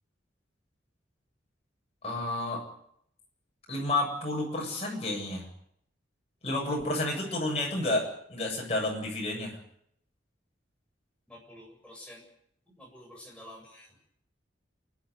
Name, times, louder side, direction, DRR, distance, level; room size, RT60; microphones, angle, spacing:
voice 1, 2.0-2.6 3.7-5.5 6.4-9.6, left 2 dB, 35° left, -1 dB, 7.7 m, -30 dB
voice 2, 11.3-12.2 12.8-13.8, left 1 dB, 5° left, -1 dB, 7.6 m, -49 dB
28.5 x 12.0 x 9.5 m, 0.71 s
head